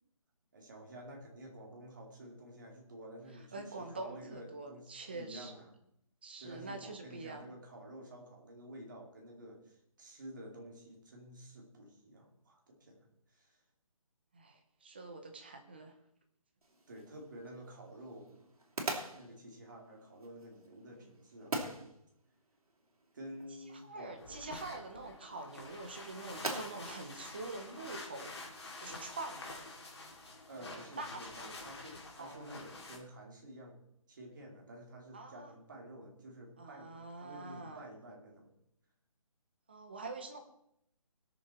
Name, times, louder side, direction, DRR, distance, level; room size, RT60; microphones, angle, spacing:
voice 1, 0.5-5.7 6.4-13.6 16.9-18.5 19.1-21.8 23.1-24.4 30.5-33.8 34.1-38.5, right 1 dB, 35° right, 0 dB, 2.5 m, -51 dB
voice 2, 3.3-5.5 6.2-7.5 14.3-15.9 20.9-21.1 23.7-28.4 28.8-29.7 30.6-31.5 32.2-32.5 35.1-35.5 36.6-37.8 39.7-40.4, right 3 dB, 15° right, 5 dB, 0.8 m, -45 dB
sound 1, 16.6-28.3, right 2 dB, 80° right, 3.1 m, -45 dB
sound 2, 24.2-33.0, left 2 dB, 45° left, 2.8 m, -48 dB
20.0 x 6.8 x 4.3 m, 0.76 s
hypercardioid pair, 180°, 18 cm